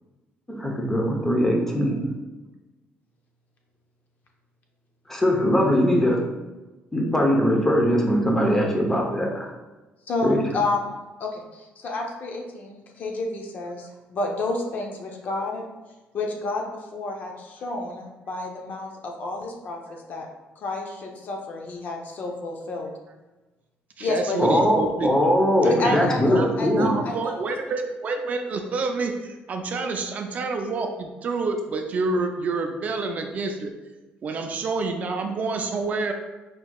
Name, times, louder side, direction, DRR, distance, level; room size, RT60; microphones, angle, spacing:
voice 1, 0.5-2.0 5.1-6.2 6.9-9.5 10.2-10.4 24.4-26.9, equal, 10° left, 0 dB, 0.8 m, -21 dB
voice 2, 10.1-10.9 11.2-15.7 16.1-19.8 20.1-20.3 20.6-22.9 24.0-24.4 25.6-27.3 29.7-29.8, left 2 dB, 50° left, 1 dB, 0.8 m, -30 dB
voice 3, 24.0-25.1 25.6-26.0 26.3-33.7 34.2-36.1, right 3 dB, 40° right, 4 dB, 0.4 m, -28 dB
4.6 x 4.4 x 2.3 m, 1.1 s
cardioid pair, 135°, 4 cm